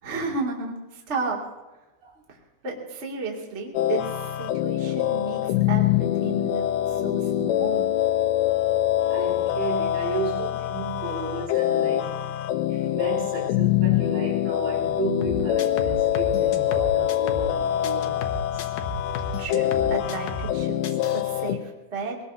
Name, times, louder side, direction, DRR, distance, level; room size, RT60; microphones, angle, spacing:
voice 1, 0.0-1.4 2.3-2.4 2.6-7.9 19.4-22.2, right 4 dB, 25° right, 1.6 m, -33 dB
sound 1, 3.8-21.6, left 12 dB, 90° left, 3.1 m, -24 dB
voice 2, 9.1-12.2 12.7-18.7, right 4 dB, 75° right, 5.6 m, -34 dB
sound 2, 15.2-17.6 17.8-20.6 20.8-21.2, left 3 dB, 75° left, 2.0 m, -34 dB
23.5 x 19.0 x 2.7 m
omnidirectional pair, 4.9 m